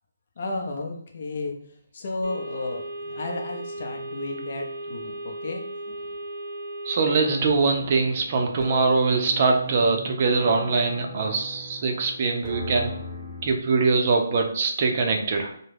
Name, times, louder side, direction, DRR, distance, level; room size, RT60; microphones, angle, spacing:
voice 1, 0.4-6.1 7.8-7.9, left 2 dB, 50° left, 2 dB, 0.6 m, -33 dB
sound 1, 2.2-7.4, right 1 dB, 80° right, 0.7 m, -36 dB
voice 2, 6.8-12.9 13.4-15.5, right 4 dB, 40° right, 3 dB, 0.5 m, -23 dB
sound 2, 7.2-13.5, equal, 5° left, 0.9 m, -38 dB
2.3 x 2.0 x 3.2 m, 0.64 s
figure-of-eight pair, 150°, 0 cm